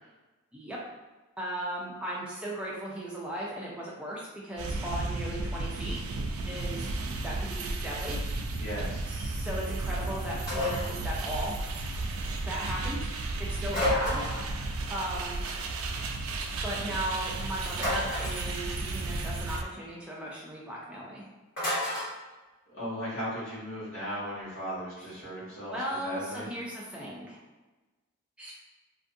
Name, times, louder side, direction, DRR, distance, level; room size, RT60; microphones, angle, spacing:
voice 1, 1.4-6.0 6.5-6.9 7.2-8.2 9.1-11.6 12.5-13.1 13.6-14.2 14.9-15.4 16.6-21.3 25.7-27.4 28.4-28.5, right 1 dB, 5° right, -5 dB, 0.4 m, -37 dB
sound 1, 4.6-19.6, right 2 dB, 75° right, 0.3 m, -33 dB
voice 2, 8.6-9.1 22.7-25.7 26.0-26.4, equal, 65° left, -9 dB, 1.3 m, -36 dB
sound 2, 10.5-11.0 13.7-14.5 17.8-18.5 21.6-22.1, left 1 dB, 45° left, 1.4 m, -30 dB
2.5 x 2.5 x 2.5 m, 1.2 s
head